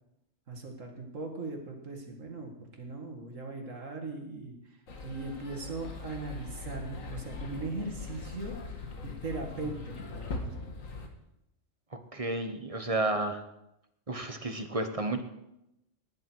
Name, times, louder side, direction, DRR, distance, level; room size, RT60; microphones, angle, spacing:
voice 1, 0.5-2.5 2.8-4.6 5.0-9.8 10.1-10.5, right 3 dB, 75° right, 3 dB, 2.5 m, -39 dB
sound 1, 4.9-11.1, left 3 dB, 90° left, 2.0 m, -41 dB
voice 2, 11.9-13.4 14.1-15.2, right 2 dB, 30° right, 7 dB, 1.1 m, -32 dB
18.5 x 10.5 x 4.6 m, 0.87 s
omnidirectional pair, 1.3 m